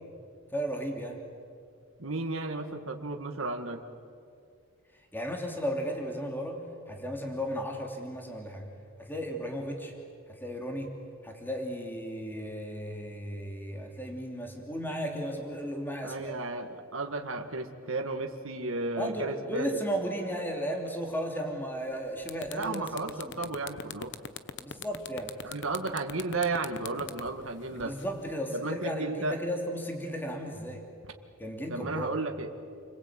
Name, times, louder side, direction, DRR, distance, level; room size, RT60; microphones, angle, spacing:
voice 1, 0.5-1.2 5.1-8.7 9.0-9.9 10.3-10.9 11.2-16.3 19.0-23.5 24.6-25.3 27.8-30.8 31.4-32.2, equal, 10° left, 2 dB, 3.0 m, -35 dB
voice 2, 2.0-3.8 16.0-19.8 22.6-24.1 25.4-28.0 28.5-29.4 31.7-32.5, right 3 dB, 65° right, 4 dB, 2.0 m, -33 dB
sound 1, 21.8-21.9 22.2-28.3, left 6 dB, 55° left, 1.0 m, -41 dB
29.5 x 22.0 x 9.0 m, 2.3 s
head